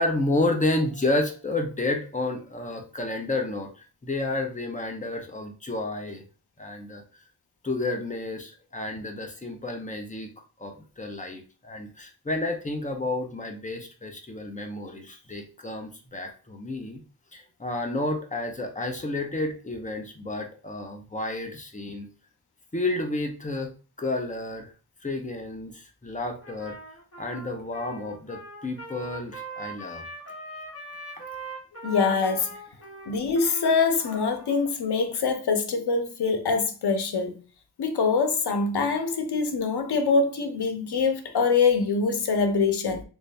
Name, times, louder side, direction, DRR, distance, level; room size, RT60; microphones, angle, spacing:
voice 1, 0.0-3.7 4.0-6.2 6.6-7.0 7.6-10.3 10.6-17.0 17.3-22.1 22.7-23.7 24.0-24.7 25.0-26.8 27.2-30.0, left 2 dB, 20° left, 0.7 m, -30 dB
Trumpet, 26.4-34.7, right 2 dB, 40° left, 1.4 m, -41 dB
voice 2, 31.8-32.5 33.1-37.4 37.8-43.0, left 4 dB, 90° left, 0.7 m, -24 dB
3.2 x 2.6 x 3.3 m
wide cardioid pair, 115°, 38 cm